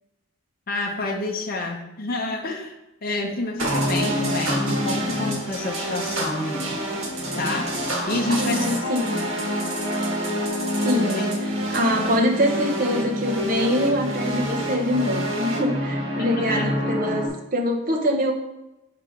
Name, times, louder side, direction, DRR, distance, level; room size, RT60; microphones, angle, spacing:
voice 1, 0.7-2.7 3.0-6.8 7.4-9.4 11.1-11.3 11.9-12.0 16.2-16.7, left 2 dB, 45° left, 1 dB, 0.7 m, -29 dB
sound 1, 3.6-17.3, equal, 85° right, 1.5 m, -27 dB
voice 2, 8.3-9.0 10.8-11.3 11.7-17.3 17.5-18.3, equal, 45° right, 1 dB, 0.9 m, -24 dB
4.9 x 4.7 x 5.1 m, 0.95 s
head